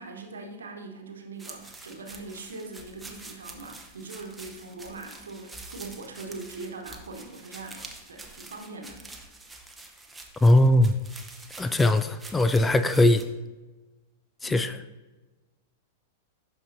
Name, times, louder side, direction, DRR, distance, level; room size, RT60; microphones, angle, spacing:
voice 1, 0.0-9.0 14.4-14.6, right 3 dB, 70° right, 2 dB, 1.1 m, -41 dB
sound 1, 1.4-13.2, right 2 dB, 5° right, 0.8 m, -46 dB
voice 2, 10.4-11.0 11.6-13.2 14.4-14.8, left 1 dB, 10° left, 11 dB, 0.3 m, -20 dB
12.0 x 4.8 x 2.6 m, 1.2 s
figure-of-eight pair, 95°, 0 cm